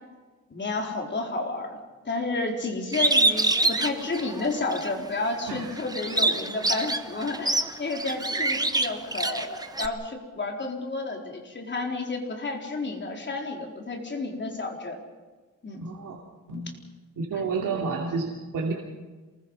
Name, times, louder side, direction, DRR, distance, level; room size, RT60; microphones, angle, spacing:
voice 1, 0.5-1.8 2.0-15.0 15.6-15.8 16.5-16.6 17.6-17.7, left 3 dB, 35° left, 1 dB, 4.3 m, -31 dB
Bird, 2.9-4.9 5.4-9.9, right 2 dB, 10° right, 1.2 m, -25 dB
voice 2, 15.7-16.2 16.5-16.7 17.2-18.7, right 4 dB, 85° right, -1 dB, 2.9 m, -30 dB
27.5 x 21.0 x 5.6 m, 1.3 s
wide cardioid pair, 145°, 32 cm